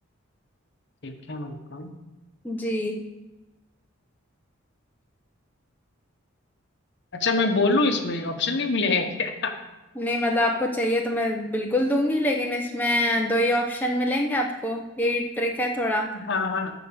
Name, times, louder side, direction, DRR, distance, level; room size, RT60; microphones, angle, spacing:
voice 1, 1.0-1.9 7.1-9.5 16.1-16.7, left 3 dB, 55° left, 5 dB, 1.0 m, -25 dB
voice 2, 2.4-3.0 10.0-16.1, left 1 dB, 10° left, 0 dB, 0.6 m, -25 dB
11.5 x 4.0 x 7.0 m, 1.1 s
head